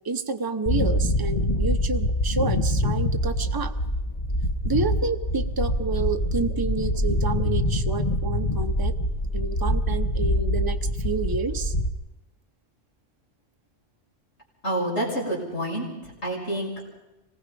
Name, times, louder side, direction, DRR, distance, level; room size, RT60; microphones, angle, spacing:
voice 1, 0.0-3.7 4.6-8.9 9.3-10.8 11.0-11.7, right 4 dB, 20° right, 6 dB, 0.9 m, -29 dB
sound 1, 0.7-11.9, left 1 dB, 35° left, 1.2 m, -25 dB
voice 2, 14.6-16.8, right 1 dB, 75° left, -2 dB, 6.1 m, -28 dB
25.5 x 19.5 x 5.3 m, 0.98 s
omnidirectional pair, 1.2 m